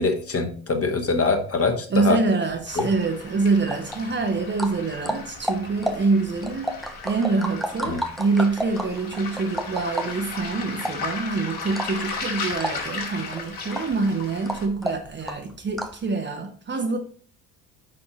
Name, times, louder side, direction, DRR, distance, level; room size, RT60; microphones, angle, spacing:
voice 1, 0.0-2.2 2.7-2.9 7.9-8.0, left 4 dB, 30° left, 1.5 m, -23 dB
voice 2, 1.9-17.0, right 3 dB, 20° right, 1.1 m, -25 dB
sound 1, 2.5-16.1, equal, ahead, 0.3 m, -33 dB
Waves surf, 2.7-14.7, left 4 dB, 45° left, 2.3 m, -36 dB
9.7 x 4.3 x 4.0 m
figure-of-eight pair, 60°, 49 cm